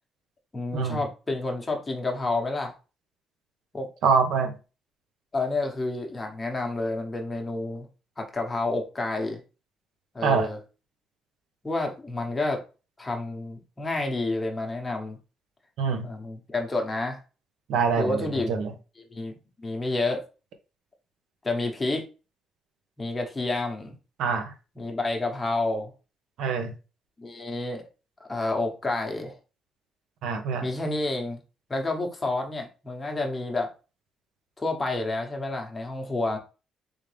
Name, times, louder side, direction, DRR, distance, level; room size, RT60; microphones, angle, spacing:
voice 1, 0.5-2.7 3.7-3.9 5.3-7.9 8.2-9.4 10.1-10.6 11.6-12.6 13.0-15.2 16.0-17.2 18.0-18.5 19.0-19.3 19.6-20.2 21.4-22.0 23.0-24.0 24.8-25.9 27.2-27.8 28.2-29.4 30.6-31.4 31.7-33.7 34.6-36.4, left 2 dB, 15° left, 2 dB, 1.0 m, -29 dB
voice 2, 4.0-4.5 10.2-10.5 15.8-16.1 17.7-18.7 24.2-24.5 26.4-26.7 30.2-30.6, right 5 dB, 80° right, 7 dB, 0.9 m, -25 dB
3.6 x 3.5 x 3.3 m, 0.32 s
cardioid pair, 140°, 0 cm